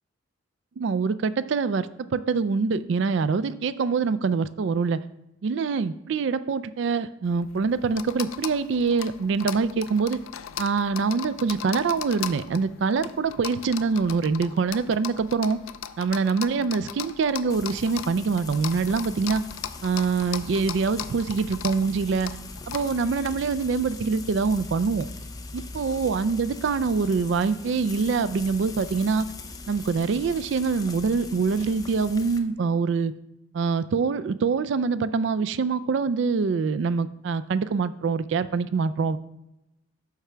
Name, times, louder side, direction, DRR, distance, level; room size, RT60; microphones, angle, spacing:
voice 1, 0.8-5.0 5.4-10.2 10.6-15.6 16.0-19.4 19.8-22.3 22.7-25.1 25.5-29.3 29.7-33.1 33.5-39.2, right 5 dB, 60° right, 14 dB, 0.3 m, -25 dB
sound 1, 7.3-23.3, left 10 dB, 80° left, 0.4 m, -38 dB
Frying (food), 17.5-32.4, left 3 dB, 20° left, 0.5 m, -41 dB
9.5 x 3.3 x 6.7 m, 0.89 s
head